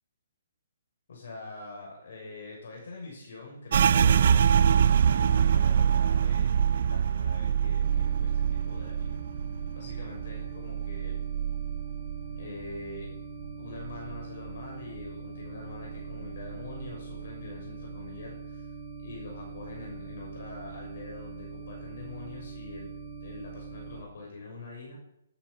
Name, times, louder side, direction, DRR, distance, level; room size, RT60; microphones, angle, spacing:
voice 1, 1.1-4.4 4.6-9.2 9.7-11.2 12.4-13.1 13.6-18.7 19.0-22.9 23.2-25.0, left 3 dB, 60° left, -1 dB, 6.5 m, -44 dB
sound 1, 3.7-13.1 13.4-14.6 15.0-15.4 15.9-16.5, right 8 dB, 50° right, 0.4 m, -25 dB
sound 2, 7.8-24.0, right 4 dB, 25° right, 2.0 m, -42 dB
13.0 x 10.5 x 7.2 m, 0.81 s
hypercardioid pair, 165°, 0 cm